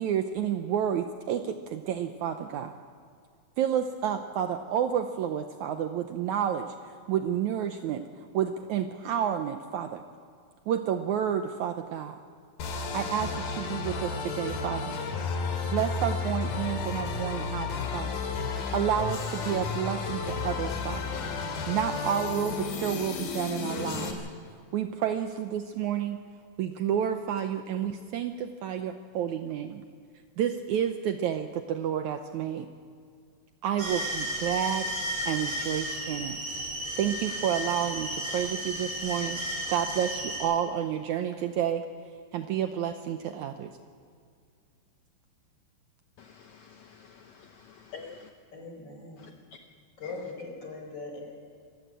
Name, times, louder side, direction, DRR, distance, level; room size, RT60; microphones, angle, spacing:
voice 1, 0.0-2.7 3.6-8.1 8.3-10.0 10.7-12.2 12.9-15.0 15.7-18.1 18.7-21.0 21.7-24.2 24.7-26.2 26.6-29.8 30.4-32.7 33.6-34.9 35.3-36.4 37.0-39.4 39.7-41.8 42.3-43.7, right 9 dB, 75° right, 7 dB, 1.9 m, -30 dB
sound 1, 12.6-24.1, left 4 dB, 90° left, 3.9 m, -32 dB
sound 2, 33.8-40.4, right 1 dB, 45° right, 7.9 m, -33 dB
voice 2, 46.2-48.3 49.2-49.3 50.0-50.1, left 5 dB, 65° left, 5 dB, 1.9 m, -48 dB
voice 3, 48.5-49.3 50.0-51.2, left 3 dB, 30° left, 1 dB, 5.0 m, -40 dB
26.0 x 15.0 x 7.5 m, 2.2 s
omnidirectional pair, 4.0 m